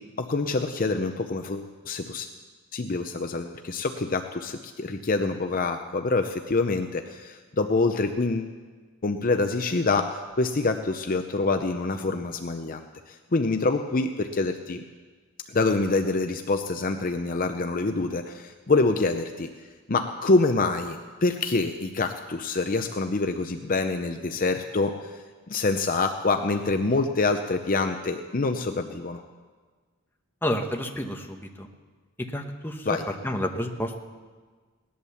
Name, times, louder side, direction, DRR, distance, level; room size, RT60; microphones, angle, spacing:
voice 1, 0.2-2.3 2.7-8.5 9.0-14.8 15.5-19.5 19.9-25.2 25.5-29.2 32.9-33.0, left 3 dB, 40° left, 6 dB, 0.6 m, -26 dB
voice 2, 30.4-31.7 32.3-33.0 33.2-33.9, left 1 dB, 10° left, 2 dB, 1.1 m, -30 dB
18.0 x 11.0 x 7.1 m, 1.4 s
head